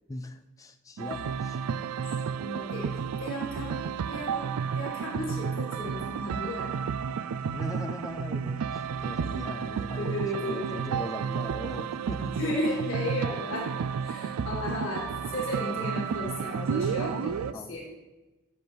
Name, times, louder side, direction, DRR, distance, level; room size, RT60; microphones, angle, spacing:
voice 1, 0.1-1.7 7.0-7.2 7.5-12.4 17.5-17.8, left 1 dB, 15° left, 8 dB, 0.3 m, -40 dB
sound 1, 1.0-17.5, right 6 dB, 90° right, 0.4 m, -32 dB
voice 2, 2.4-3.8 4.1-4.4 4.8-6.7 10.0-10.8 12.4-13.7 14.0-17.9, left 1 dB, 60° left, -3 dB, 2.0 m, -34 dB
12.0 x 5.9 x 3.4 m, 1.1 s
head